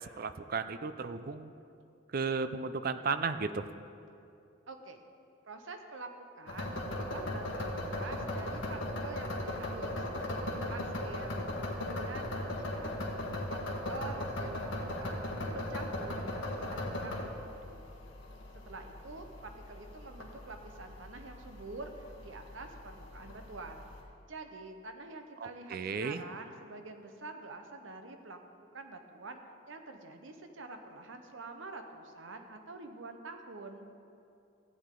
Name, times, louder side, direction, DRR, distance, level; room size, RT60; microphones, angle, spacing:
voice 1, 0.0-1.5 2.1-3.7 25.4-26.2, right 4 dB, 45° right, 11 dB, 0.4 m, -34 dB
voice 2, 4.7-5.0 5.5-6.1 6.4-10.0 10.7-12.9 13.5-14.7 15.0-17.8 18.5-23.9 24.3-28.4 28.7-29.4 29.7-33.9, right 3 dB, 70° right, 6 dB, 0.9 m, -47 dB
sound 1, 6.5-24.0, left 1 dB, 70° left, 1.5 m, -38 dB
15.0 x 8.7 x 3.8 m, 2.6 s
head